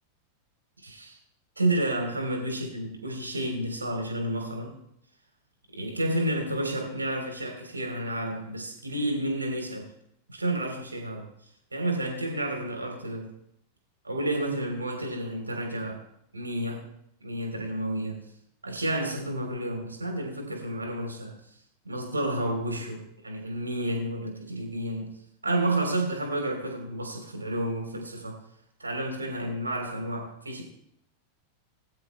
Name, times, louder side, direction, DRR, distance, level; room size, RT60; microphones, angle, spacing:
voice 1, 0.8-1.2 1.6-4.7 5.7-9.9 10.3-11.3 11.7-13.3 14.0-16.0 16.3-16.8 17.2-18.2 18.6-21.3 21.8-25.1 25.4-28.4 28.8-30.6, right 1 dB, 80° right, 2 dB, 3.4 m, -30 dB
21.5 x 12.5 x 2.2 m, 0.74 s
figure-of-eight pair, 90°, 0 cm